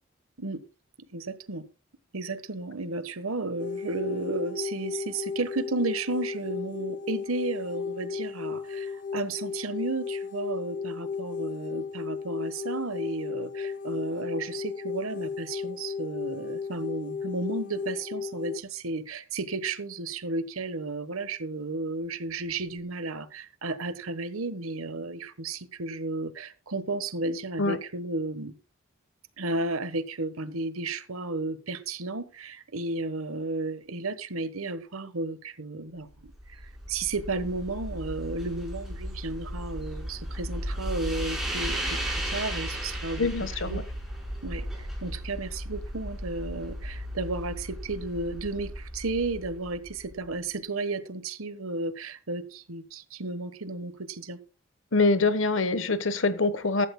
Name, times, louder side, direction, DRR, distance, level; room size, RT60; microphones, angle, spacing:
voice 1, 1.1-1.7 2.1-28.5 29.4-43.8 44.4-54.4, right 2 dB, 90° right, 1.2 m, -33 dB
sound 1, 3.6-18.6, left 5 dB, 40° left, 0.8 m, -35 dB
sound 2, 36.2-50.3, equal, ahead, 4.5 m, -35 dB
voice 2, 43.2-43.8 54.9-56.9, left 3 dB, 65° left, 1.2 m, -24 dB
15.0 x 12.5 x 2.2 m
head